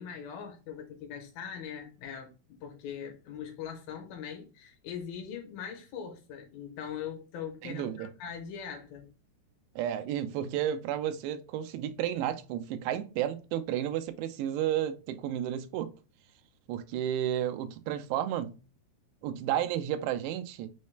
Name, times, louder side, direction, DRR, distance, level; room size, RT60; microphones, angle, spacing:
voice 1, 0.0-9.1, left 8 dB, 75° left, 2.4 m, -41 dB
voice 2, 7.6-8.1 9.8-15.9 16.7-18.6 19.2-20.7, right 11 dB, 90° right, 2.7 m, -32 dB
6.3 x 2.1 x 3.1 m
omnidirectional pair, 4.7 m